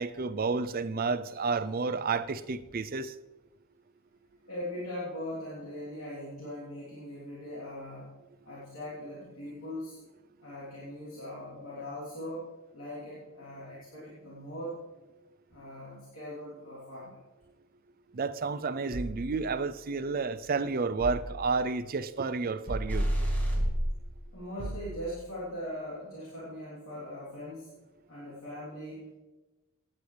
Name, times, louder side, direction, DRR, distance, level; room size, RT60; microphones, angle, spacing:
voice 1, 0.0-3.1 18.1-23.1, right 4 dB, 40° right, 0.5 m, -31 dB
voice 2, 4.5-8.1 8.4-10.0 10.4-12.5 12.7-14.8 15.5-17.2 24.3-27.7 28.1-29.2, left 1 dB, 70° left, 3.4 m, -40 dB
sound 1, 18.9-20.3 21.0-21.8 22.7-23.6 24.6-25.4, right 1 dB, 30° left, 1.8 m, -41 dB
sound 2, 22.8-24.0, equal, 10° left, 2.4 m, -28 dB
16.5 x 9.9 x 3.4 m
head